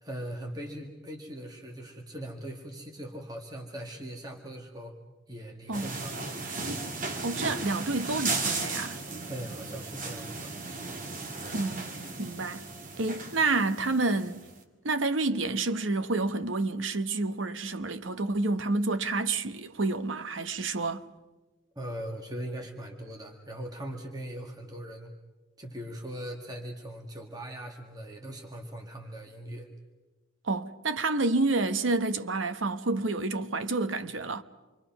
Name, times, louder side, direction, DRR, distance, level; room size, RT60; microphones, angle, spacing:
voice 1, 0.0-4.9 5.3-6.2 9.2-10.5 21.8-25.1 25.6-29.7, right 1 dB, 20° right, 2.0 m, -40 dB
sound 1, 5.7-14.5, right 3 dB, 45° right, 2.1 m, -36 dB
voice 2, 7.2-9.0 11.5-11.9 12.2-12.7 13.0-14.4 14.8-21.1 30.4-34.4, right 3 dB, 80° right, 1.1 m, -29 dB
28.0 x 24.0 x 6.0 m
head